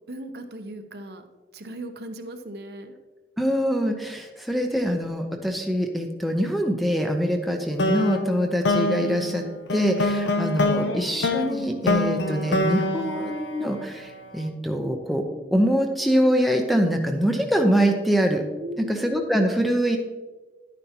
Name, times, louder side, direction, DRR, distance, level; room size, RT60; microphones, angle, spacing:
voice 1, 0.1-1.2 1.5-2.9 10.7-11.0 18.6-19.2, right 1 dB, 65° right, 6 dB, 0.8 m, -38 dB
voice 2, 3.4-9.4 9.7-15.2 15.5-18.4 18.8-20.0, equal, ahead, 2 dB, 0.7 m, -24 dB
sound 1, 7.8-14.2, left 2 dB, 90° left, 0.7 m, -26 dB
11.0 x 9.2 x 2.9 m, 1.3 s
head